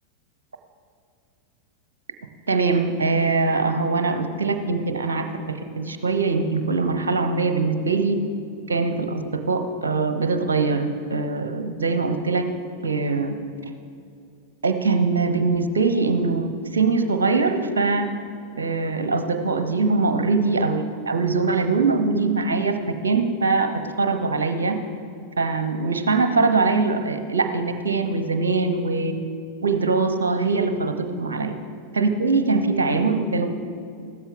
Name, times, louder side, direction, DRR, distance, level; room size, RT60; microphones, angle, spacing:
voice 1, 2.5-8.2 8.7-12.4 12.8-13.4 14.6-18.1 18.6-22.8 23.0-23.7 24.0-24.8 25.4-29.2 29.6-31.5 31.9-33.5, right 4 dB, 70° right, 8 dB, 0.8 m, -22 dB
15.0 x 12.5 x 3.9 m, 2.4 s
figure-of-eight pair, 90°, 0 cm